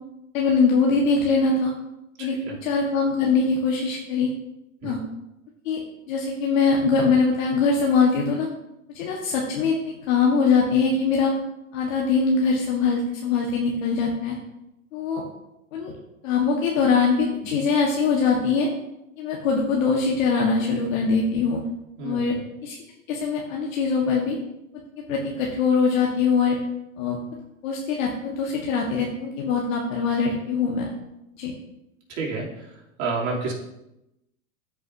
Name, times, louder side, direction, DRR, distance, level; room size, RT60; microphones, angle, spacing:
voice 1, 0.3-1.7 2.2-4.3 4.8-5.0 5.6-5.8 6.1-8.5 8.9-11.3 11.7-14.4 14.9-15.2 15.7-15.9 16.2-18.7 19.2-21.6 22.0-22.4 22.6-22.8 23.1-24.4 25.1-26.6 27.0-27.2 27.6-30.9 31.4-31.5, left 4 dB, 70° left, -1 dB, 1.5 m, -22 dB
voice 2, 2.2-2.6 4.8-4.9 22.0-22.4 32.1-33.5, right 4 dB, 45° right, -4 dB, 3.1 m, -30 dB
13.5 x 5.4 x 2.7 m, 0.90 s
hypercardioid pair, 120°, 41 cm